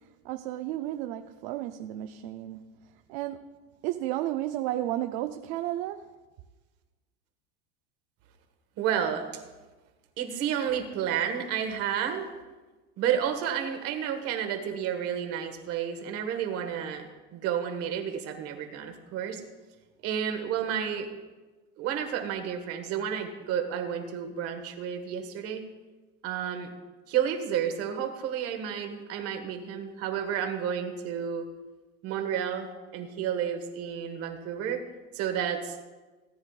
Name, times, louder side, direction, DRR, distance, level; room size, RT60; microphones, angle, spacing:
voice 1, 0.2-2.6 3.1-3.6 3.8-6.0, right 14 dB, 60° right, 0.6 m, -32 dB
voice 2, 8.8-9.4 10.2-12.3 13.0-17.1 17.3-19.4 20.0-21.1 21.8-25.7 26.2-26.7 27.1-31.5 32.0-34.8 35.1-35.8, right 8 dB, 45° right, 1.6 m, -31 dB
18.0 x 9.6 x 2.4 m
supercardioid pair, 145°, 33 cm